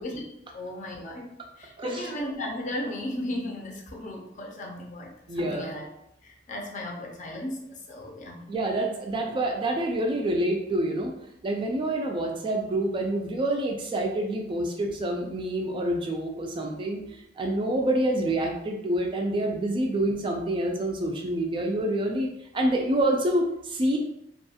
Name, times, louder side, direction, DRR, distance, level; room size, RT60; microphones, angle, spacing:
voice 1, 0.5-5.9 6.2-8.5, left 1 dB, 45° left, -1 dB, 0.5 m, -36 dB
voice 2, 1.8-2.1 5.3-5.7 8.5-11.1 11.4-24.0, right 1 dB, 25° right, 1 dB, 0.3 m, -27 dB
2.3 x 2.2 x 2.7 m, 0.80 s
head